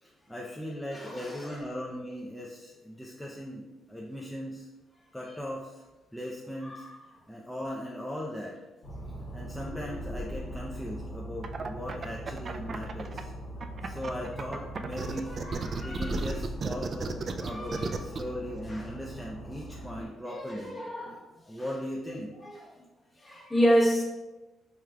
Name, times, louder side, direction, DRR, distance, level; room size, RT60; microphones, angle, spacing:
voice 1, 0.0-4.7 5.1-5.8 6.1-6.9 7.3-8.6 9.3-13.3 13.8-15.4 15.8-20.8 21.5-22.3, equal, 5° left, -4 dB, 0.5 m, -38 dB
voice 2, 0.9-1.3 6.6-6.9 15.0-15.1 15.4-16.2 17.5-17.9 20.0-21.2 21.5-21.6 22.4-22.6 23.2-24.0, equal, 25° left, -2 dB, 1.1 m, -29 dB
sound 1, 8.8-20.0, equal, 45° left, 0.7 m, -40 dB
sound 2, 11.4-13.2 13.6-18.2, right 5 dB, 45° right, 0.3 m, -34 dB
4.8 x 3.3 x 2.3 m, 1.1 s
cardioid pair, 90°, 0 cm